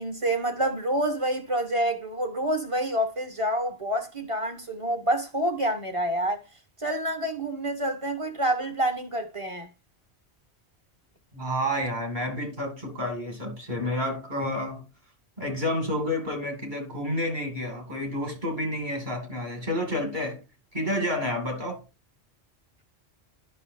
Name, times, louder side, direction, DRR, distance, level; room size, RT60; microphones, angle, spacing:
voice 1, 0.0-6.4 6.8-9.7, right 1 dB, 30° right, 1.2 m, -27 dB
voice 2, 11.3-14.9 15.4-20.4 20.7-21.8, left 1 dB, 45° right, 2.6 m, -30 dB
11.0 x 5.8 x 2.6 m
omnidirectional pair, 1.1 m